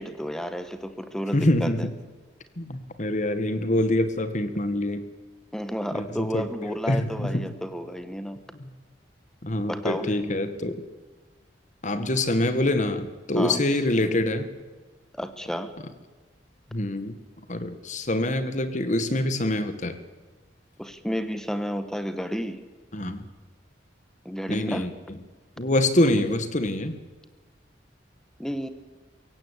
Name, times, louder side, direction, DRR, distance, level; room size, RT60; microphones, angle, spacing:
voice 1, 0.0-1.7 5.5-8.4 9.7-10.1 13.3-13.6 15.1-15.7 20.8-22.6 24.2-24.9 28.4-28.7, equal, 5° left, 10 dB, 1.4 m, -31 dB
voice 2, 1.3-1.9 2.6-5.1 5.9-6.5 6.9-7.5 8.6-8.7 9.4-10.8 11.8-14.5 16.7-17.2 17.5-20.0 22.9-23.3 24.5-25.2 25.6-27.0, left 1 dB, 45° left, 11 dB, 1.8 m, -25 dB
23.0 x 17.0 x 8.3 m, 1.3 s
head